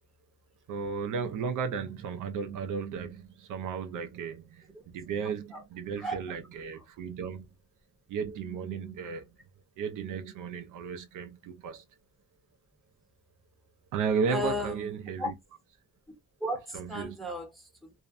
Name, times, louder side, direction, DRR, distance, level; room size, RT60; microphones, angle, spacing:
voice 1, 0.7-7.5 8.1-9.4 9.8-11.8 13.9-15.3 16.7-17.2, right 6 dB, 65° right, 0.5 m, -34 dB
voice 2, 14.3-14.9 15.2-15.3 16.4-17.9, left 1 dB, ahead, 0.7 m, -35 dB
2.5 x 2.1 x 2.4 m
cardioid pair, 160°, 34 cm